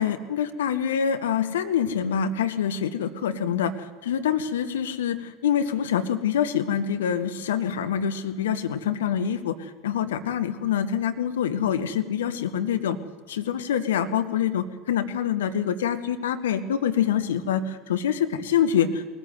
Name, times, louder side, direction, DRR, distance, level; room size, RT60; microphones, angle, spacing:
voice 1, 0.0-13.0 13.3-19.1, left 8 dB, 75° left, 9 dB, 1.2 m, -25 dB
20.0 x 14.5 x 9.4 m, 1.5 s
hypercardioid pair, 75°, 0 cm